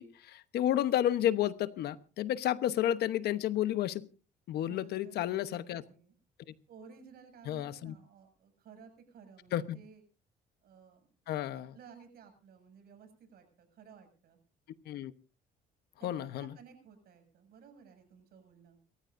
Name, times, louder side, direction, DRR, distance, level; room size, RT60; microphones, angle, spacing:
voice 1, 0.0-4.1 4.5-5.8 7.5-7.9 9.5-9.8 11.3-11.7 14.9-15.1 16.0-16.5, left 12 dB, 70° left, 13 dB, 1.0 m, -31 dB
voice 2, 4.6-6.1 6.7-10.0 10.6-11.1 11.5-14.4 16.0-18.8, right 6 dB, 65° right, 6 dB, 7.0 m, -56 dB
29.5 x 14.0 x 2.6 m, 0.35 s
cardioid pair, 110°, 17 cm